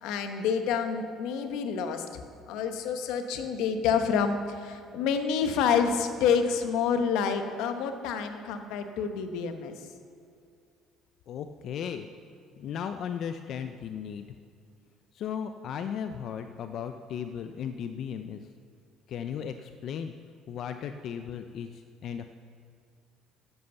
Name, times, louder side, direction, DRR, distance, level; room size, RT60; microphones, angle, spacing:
voice 1, 0.0-2.1 2.5-9.9, left 6 dB, 80° left, 7 dB, 1.1 m, -28 dB
voice 2, 11.3-12.1 12.6-14.3 15.1-18.4 19.1-20.1 20.5-22.3, left 8 dB, 55° left, 8 dB, 0.5 m, -36 dB
11.0 x 8.0 x 6.9 m, 2.4 s
cardioid pair, 110°, 0 cm